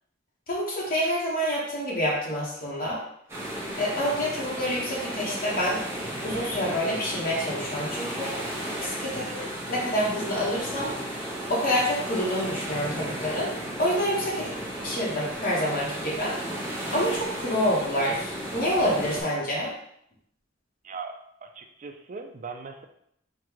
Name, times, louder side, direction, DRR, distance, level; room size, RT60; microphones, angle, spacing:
voice 1, 0.5-3.0 3.8-5.8 6.2-8.4 8.8-10.9 11.5-13.5 13.8-19.7, equal, 45° left, -4 dB, 0.9 m, -28 dB
sound 1, 3.3-19.2, right 1 dB, 15° right, 0.8 m, -34 dB
voice 2, 9.0-9.4 14.4-14.6 20.8-22.8, right 4 dB, 40° right, 5 dB, 0.4 m, -40 dB
3.7 x 2.2 x 4.5 m, 0.73 s
head